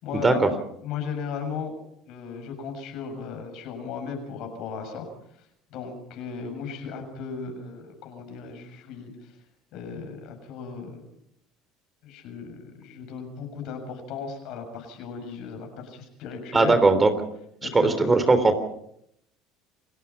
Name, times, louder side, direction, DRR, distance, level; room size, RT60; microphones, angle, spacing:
voice 1, 0.0-0.4 0.8-1.7 2.1-5.1 5.4-9.4 9.7-11.0 12.0-16.8 17.6-18.2, left 6 dB, 65° left, 5 dB, 7.0 m, -36 dB
voice 2, 16.5-17.1 17.7-18.4, right 3 dB, 20° right, 10 dB, 3.5 m, -18 dB
29.0 x 17.0 x 5.8 m, 0.74 s
hypercardioid pair, 80°, 0 cm